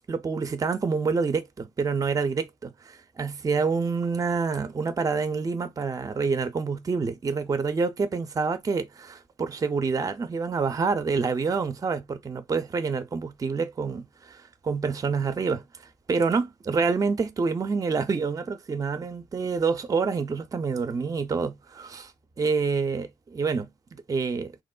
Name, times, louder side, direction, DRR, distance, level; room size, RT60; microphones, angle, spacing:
voice 1, 0.1-15.6 16.1-22.1 22.4-24.6, right 4 dB, 30° right, 0.4 m, -27 dB
3.0 x 2.1 x 2.2 m
hypercardioid pair, 40°, 13 cm